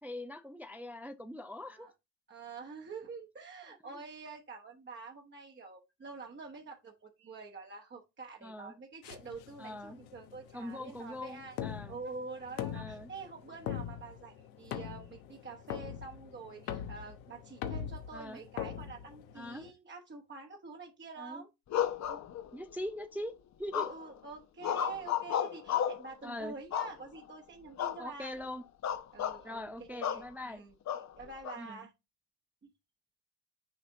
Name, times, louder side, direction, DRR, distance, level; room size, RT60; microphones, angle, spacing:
voice 1, 0.0-1.9 3.8-4.0 8.4-8.7 9.6-10.0 10.5-12.0 12.7-13.1 18.1-18.4 19.3-19.7 21.2-21.4 22.5-23.9 26.2-26.5 28.0-28.6 29.4-30.6 31.6-31.9, left 1 dB, 5° right, 0.4 m, -42 dB
voice 2, 2.3-11.6 11.9-21.5 22.1-22.2 23.7-28.3 29.1-29.6 29.9-31.9, right 4 dB, 20° right, 1.2 m, -47 dB
sound 1, 9.0-19.7, left 9 dB, 80° left, 1.1 m, -42 dB
sound 2, 21.7-22.7 23.7-24.2 24.6-26.1 26.7-27.3 27.8-28.0 28.3-28.5 28.8-29.4 30.0-30.3 30.9-31.6, left 10 dB, 35° left, 0.8 m, -33 dB
6.8 x 4.1 x 3.9 m
hypercardioid pair, 85°, 49 cm